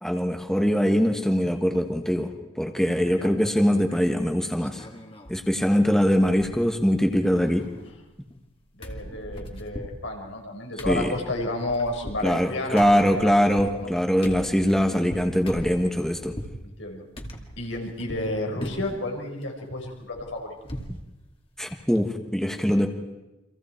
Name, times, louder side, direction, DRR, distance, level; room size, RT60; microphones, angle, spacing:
voice 1, 0.0-4.8 5.3-7.7 10.9-11.1 12.2-16.3 21.6-22.9, equal, 5° left, 4 dB, 1.5 m, -22 dB
sound 1, 3.9-4.2 4.6-5.4 5.7-5.8 6.1-6.9 7.2-8.5 8.8-16.6 17.2-18.3 18.6-19.1 19.4-21.0 21.3-21.4 21.8-22.0, equal, 30° left, 2.5 m, -40 dB
voice 2, 8.8-13.3 13.7-13.9 16.6-17.0 17.6-20.5, left 2 dB, 85° left, 1 dB, 5.1 m, -31 dB
30.0 x 25.5 x 4.5 m, 1.0 s
head